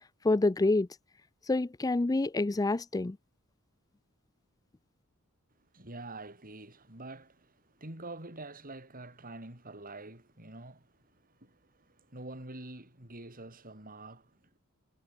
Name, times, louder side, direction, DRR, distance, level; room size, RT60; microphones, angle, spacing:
voice 1, 0.2-0.9 1.5-3.2, left 2 dB, 15° left, 0.4 m, -27 dB
voice 2, 5.7-14.6, right 2 dB, 40° right, 7.5 m, -46 dB
head